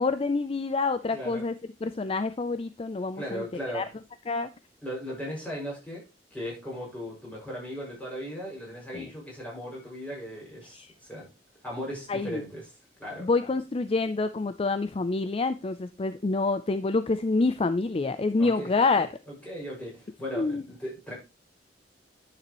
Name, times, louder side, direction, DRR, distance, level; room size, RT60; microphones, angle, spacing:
voice 1, 0.0-1.5 1.8-3.4 3.7-3.8 4.3-4.5 8.9-9.1 10.7-10.9 12.1-12.4 13.2-19.1 20.4-20.6, left 3 dB, 35° left, 0.4 m, -27 dB
voice 2, 1.1-1.4 3.2-3.9 4.8-11.3 11.6-12.7 13.0-13.3 18.4-18.7 19.3-21.1, equal, 10° left, 5.7 m, -37 dB
10.0 x 6.8 x 3.0 m
head